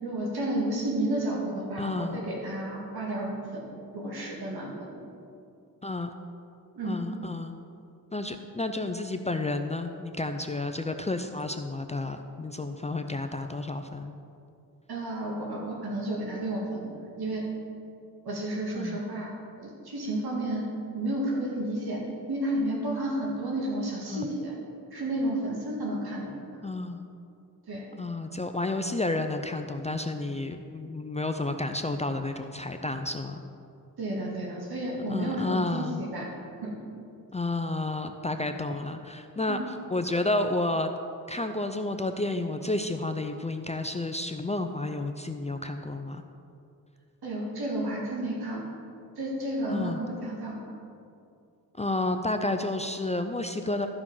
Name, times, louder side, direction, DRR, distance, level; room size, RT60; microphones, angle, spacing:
voice 1, 0.0-3.6 3.9-5.0 6.8-7.0 14.9-16.9 17.2-17.5 18.2-19.3 19.6-20.6 20.9-22.0 22.3-24.6 24.9-26.4 27.7-27.9 34.0-36.3 36.6-36.7 39.5-39.7 47.2-48.6 49.2-50.7, right 1 dB, 85° right, -2 dB, 2.1 m, -31 dB
voice 2, 1.8-2.2 5.8-6.1 6.8-7.6 8.1-14.1 18.7-19.0 24.1-24.3 26.6-27.1 28.0-33.4 35.1-36.0 37.3-39.6 39.9-40.9 41.3-46.2 49.7-50.0 51.8-53.9, left 2 dB, 20° left, 6 dB, 0.5 m, -31 dB
13.5 x 5.0 x 5.6 m, 2.5 s
wide cardioid pair, 85°, 37 cm